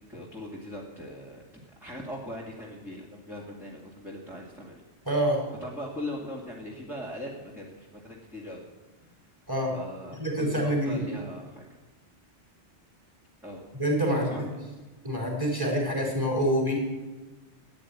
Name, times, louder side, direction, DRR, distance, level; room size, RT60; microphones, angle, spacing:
voice 1, 0.0-4.8 5.6-8.6 9.7-11.7 13.4-13.6 14.2-14.6, left 1 dB, ahead, -5 dB, 2.4 m, -40 dB
voice 2, 5.0-5.4 9.5-9.8 10.2-11.0 13.8-14.5 15.0-16.8, equal, 20° right, 0 dB, 4.6 m, -26 dB
14.0 x 9.5 x 9.8 m, 1.2 s
omnidirectional pair, 1.2 m